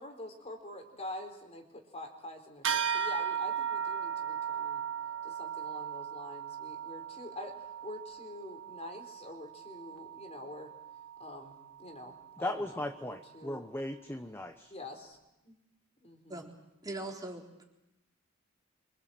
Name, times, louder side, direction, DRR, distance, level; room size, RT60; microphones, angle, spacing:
voice 1, 0.0-4.8 5.2-7.5 7.8-10.7 11.2-13.7 14.7-15.2 15.4-15.6 16.0-16.5, left 1 dB, 30° left, 4 dB, 4.2 m, -46 dB
sound 1, 2.6-12.4, right 8 dB, 65° right, 1.9 m, -37 dB
voice 2, 12.4-14.7, left 1 dB, 10° left, 7 dB, 1.0 m, -37 dB
voice 3, 16.8-17.6, right 2 dB, 20° right, 0 dB, 3.9 m, -40 dB
26.0 x 24.5 x 7.7 m, 0.93 s
head